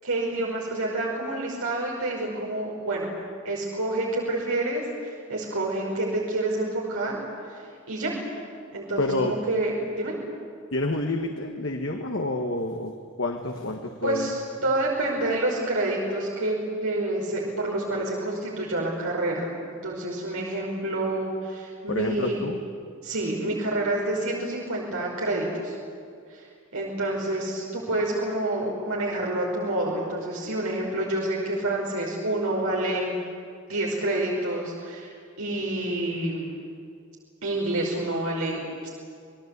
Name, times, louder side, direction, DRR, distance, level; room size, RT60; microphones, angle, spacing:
voice 1, 0.0-3.1 3.4-7.2 7.5-8.1 8.7-10.1 14.0-22.4 23.0-25.7 26.3-26.5 26.7-33.2 33.7-35.1 35.4-36.6 37.4-38.9, right 1 dB, 85° right, -3 dB, 5.2 m, -28 dB
voice 2, 9.0-9.3 10.7-14.3 21.9-22.6, left 2 dB, 60° left, 3 dB, 1.7 m, -28 dB
28.5 x 20.5 x 8.3 m, 2.3 s
head